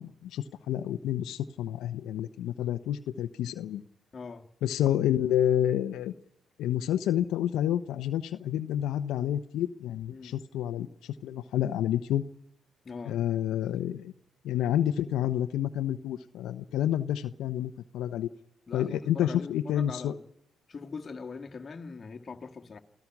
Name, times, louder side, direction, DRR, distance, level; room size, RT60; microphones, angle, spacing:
voice 1, 0.0-3.8 4.6-6.1 6.6-12.2 13.1-14.1 14.4-18.3 18.7-20.1, left 11 dB, 85° left, 0.8 m, -29 dB
voice 2, 4.1-4.5 10.1-10.4 12.8-13.2 18.7-20.3 20.7-22.8, left 4 dB, 35° left, 1.9 m, -42 dB
28.5 x 16.0 x 6.1 m
cardioid pair, 90°, 0 cm